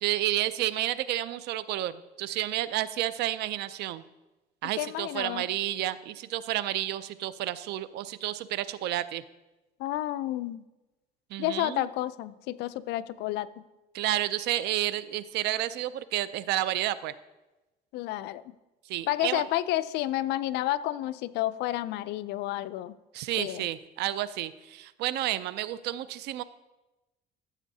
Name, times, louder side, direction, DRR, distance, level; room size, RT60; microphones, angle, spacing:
voice 1, 0.0-4.0 4.6-9.2 11.3-11.9 13.9-17.1 18.9-19.4 23.1-26.4, right 14 dB, 80° right, 16 dB, 0.4 m, -30 dB
voice 2, 4.8-5.5 9.8-10.6 11.4-13.5 17.9-18.4 19.1-22.9 23.4-23.7, left 14 dB, 85° left, 16 dB, 0.4 m, -30 dB
14.0 x 7.1 x 2.7 m, 1.1 s
cardioid pair, 110°, 17 cm